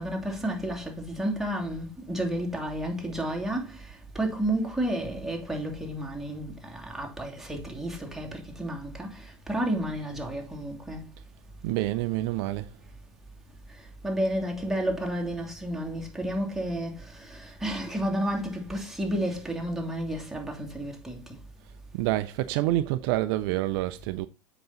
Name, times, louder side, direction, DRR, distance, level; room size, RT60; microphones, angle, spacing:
voice 1, 0.0-11.1 14.0-21.4, right 1 dB, ahead, 2.7 m, -31 dB
voice 2, 11.6-12.7 22.0-24.3, right 16 dB, 55° right, 0.5 m, -27 dB
7.7 x 6.0 x 3.9 m
hypercardioid pair, 95°, 15 cm